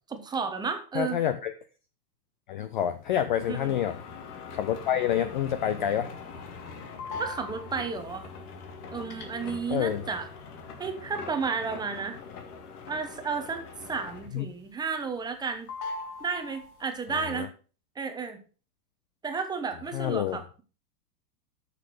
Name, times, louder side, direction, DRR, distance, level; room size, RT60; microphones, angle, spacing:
voice 1, 0.1-1.2 3.5-3.8 7.2-8.3 8.9-10.3 10.8-12.2 12.9-13.6 13.9-15.7 16.2-17.5 18.0-18.4 19.2-20.6, right 5 dB, 10° right, 7 dB, 0.9 m, -32 dB
voice 2, 0.9-1.5 2.5-4.0 4.5-6.1 9.7-10.0 14.3-14.5 17.3-17.5 19.9-20.4, left 10 dB, 35° left, 11 dB, 0.4 m, -27 dB
sound 1, 3.0-14.5 14.9-15.4 15.7-17.0, left 4 dB, 60° left, 2.6 m, -42 dB
9.1 x 6.7 x 6.5 m, 0.37 s
hypercardioid pair, 150°, 50 cm